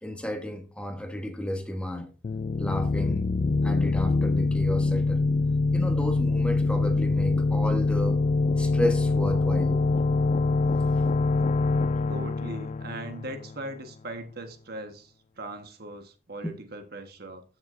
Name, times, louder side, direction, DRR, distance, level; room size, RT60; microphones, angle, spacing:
voice 1, 0.0-2.1 2.6-3.3 3.6-5.2 5.7-8.2 8.6-9.8 16.4-16.5, left 1 dB, 5° left, 1.2 m, -32 dB
sound 1, 2.2-13.8, left 3 dB, 40° left, 0.3 m, -24 dB
voice 2, 12.1-17.4, right 1 dB, 55° right, 1.4 m, -39 dB
14.5 x 6.5 x 2.6 m
head